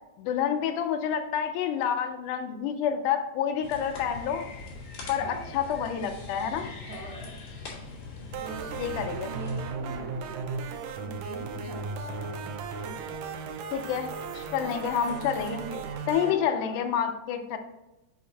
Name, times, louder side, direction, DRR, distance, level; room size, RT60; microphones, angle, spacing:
voice 1, 0.2-4.5 5.1-6.7 8.8-9.3 13.7-14.1 14.4-15.6 16.1-17.6, left 8 dB, 75° left, 6 dB, 2.0 m, -28 dB
sound 1, 3.6-9.7, left 3 dB, 60° left, 3.6 m, -42 dB
voice 2, 5.2-5.7 6.9-7.4 8.4-13.2 14.6-17.0, right 3 dB, 70° right, -2 dB, 2.3 m, -44 dB
sound 2, 8.3-16.3, right 4 dB, 90° right, 1.5 m, -36 dB
8.3 x 5.1 x 2.8 m, 0.98 s
omnidirectional pair, 4.0 m